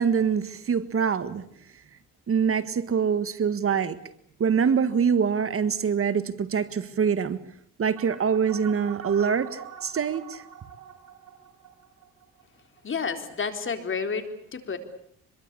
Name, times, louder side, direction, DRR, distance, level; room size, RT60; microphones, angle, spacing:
voice 1, 0.0-1.4 2.3-4.0 4.4-7.4 7.8-10.4, right 6 dB, 45° right, 1.7 m, -24 dB
sound 1, 8.0-12.8, right 8 dB, 70° right, 5.5 m, -45 dB
voice 2, 12.8-14.8, left 5 dB, 40° left, 4.1 m, -30 dB
25.5 x 22.5 x 8.5 m
cardioid pair, 90°, 30 cm